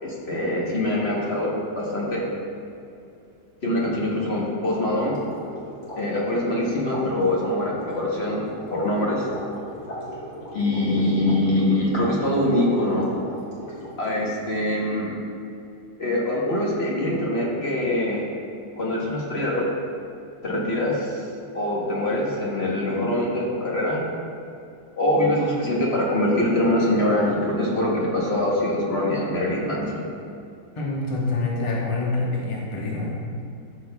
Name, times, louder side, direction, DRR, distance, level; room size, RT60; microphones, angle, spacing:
voice 1, 0.0-2.2 3.6-5.1 6.0-8.4 8.7-9.3 10.5-13.1 14.0-15.1 16.0-18.2 18.8-19.6 20.4-21.2 21.5-24.0 25.0-30.0, left 1 dB, 40° left, -4 dB, 1.2 m, -23 dB
sound 1, 4.7-14.1, left 1 dB, 60° left, 2.3 m, -38 dB
voice 2, 30.8-33.2, left 3 dB, 25° left, -4 dB, 0.7 m, -26 dB
12.5 x 6.2 x 2.3 m, 2.5 s
omnidirectional pair, 1.9 m